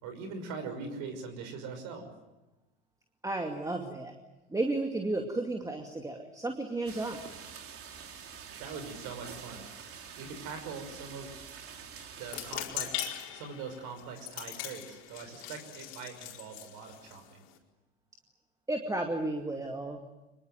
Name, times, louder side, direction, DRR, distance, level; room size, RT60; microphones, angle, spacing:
voice 1, 0.0-2.1 8.6-9.7 10.2-11.3 12.2-17.4, right 5 dB, 55° right, 7 dB, 5.9 m, -42 dB
voice 2, 3.2-4.1 4.5-7.2 18.7-20.0, right 2 dB, 10° right, 3 dB, 2.4 m, -33 dB
sound 1, 6.9-12.6, right 7 dB, 40° right, 3.4 m, -46 dB
sound 2, 12.2-17.6, left 12 dB, 60° left, 4.5 m, -41 dB
25.0 x 22.0 x 9.4 m, 1.1 s
hypercardioid pair, 90°, 36 cm